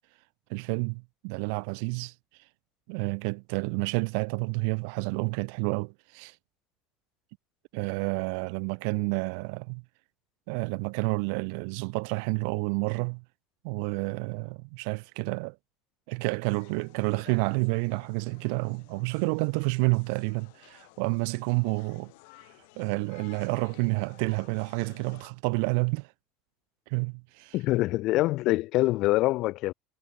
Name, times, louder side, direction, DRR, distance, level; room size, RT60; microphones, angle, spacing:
voice 1, 0.5-2.1 2.9-6.4 7.7-9.8 10.5-13.2 13.6-15.6 16.1-22.1 22.8-26.1 26.9-27.5, right 38 dB, 80° right, 0.6 m, -29 dB
sound 1, 16.4-25.3, left 29 dB, 90° left, 2.5 m, -55 dB
voice 2, 27.5-29.7, left 18 dB, 55° left, 0.6 m, -25 dB
cardioid pair, 155°, 0 cm